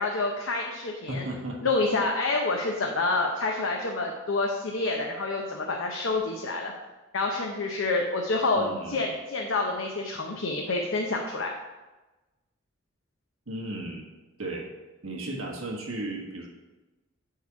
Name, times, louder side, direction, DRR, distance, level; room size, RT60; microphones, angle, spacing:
voice 1, 0.0-1.2 1.6-6.7 7.1-11.5, left 3 dB, 70° left, 1 dB, 0.8 m, -28 dB
voice 2, 1.1-1.6 8.5-9.1 13.5-14.1 14.4-14.7 15.0-16.5, right 2 dB, 80° right, 0 dB, 1.5 m, -35 dB
8.4 x 4.6 x 4.7 m, 1.1 s
head